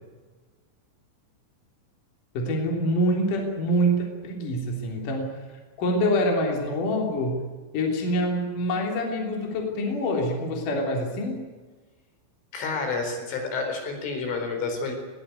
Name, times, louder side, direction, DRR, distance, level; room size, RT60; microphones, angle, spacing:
voice 1, 2.3-5.4 5.8-7.4 7.7-11.4, equal, 45° left, 0 dB, 4.5 m, -25 dB
voice 2, 12.5-14.9, left 4 dB, 70° left, 4 dB, 6.7 m, -29 dB
20.5 x 18.0 x 9.6 m, 1.3 s
omnidirectional pair, 5.9 m